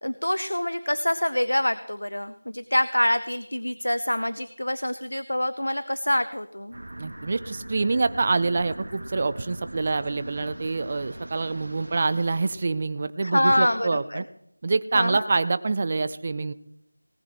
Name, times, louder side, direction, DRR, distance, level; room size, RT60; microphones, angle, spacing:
voice 1, 0.0-6.7 13.2-14.2 14.9-15.3, left 1 dB, 90° left, 12 dB, 0.7 m, -26 dB
sound 1, 6.7-12.5, right 1 dB, 65° right, 1.7 m, -40 dB
voice 2, 7.0-14.2 14.6-16.5, right 3 dB, 30° right, 13 dB, 0.5 m, -26 dB
18.5 x 10.5 x 4.4 m, 0.78 s
figure-of-eight pair, 170°, 0 cm